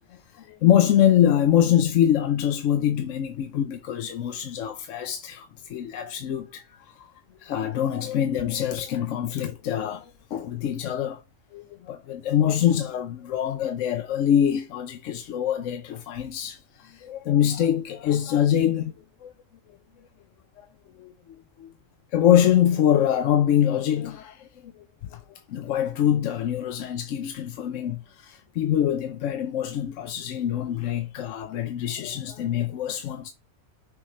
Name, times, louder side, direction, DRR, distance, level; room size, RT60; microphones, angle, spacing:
voice 1, 0.1-7.1 7.4-11.2 11.5-18.9 19.2-19.3 20.6-20.7 21.0-21.7 22.1-24.7 25.0-33.3, left 10 dB, 75° left, 0.9 m, -24 dB
6.4 x 3.2 x 5.3 m
omnidirectional pair, 1.4 m